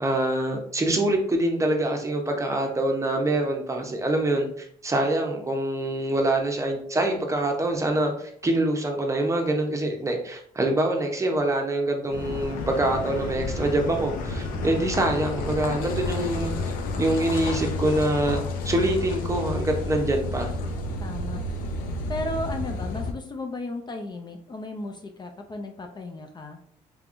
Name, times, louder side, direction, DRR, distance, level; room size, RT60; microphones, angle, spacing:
voice 1, 0.0-16.5 17.0-20.5, right 1 dB, 20° right, 3 dB, 0.7 m, -25 dB
Car passing by / Idling / Accelerating revving vroom, 12.1-23.1, left 3 dB, 85° left, 0.5 m, -30 dB
voice 2, 21.0-21.6 22.1-26.6, left 2 dB, 30° left, 5 dB, 0.4 m, -34 dB
3.4 x 3.3 x 2.5 m, 0.64 s
cardioid pair, 95°, 14 cm